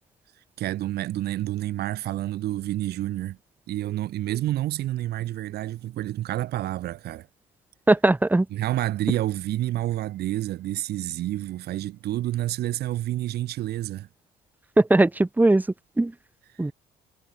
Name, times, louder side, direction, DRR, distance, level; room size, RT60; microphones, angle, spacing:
voice 1, 0.6-3.4 3.7-7.3 8.5-14.1, right 14 dB, 70° right, 4.5 m, -29 dB
voice 2, 7.9-8.5 14.8-15.6 16.0-16.1 16.6-16.7, right 2 dB, 10° right, 1.4 m, -19 dB
cardioid pair, 110°, 17 cm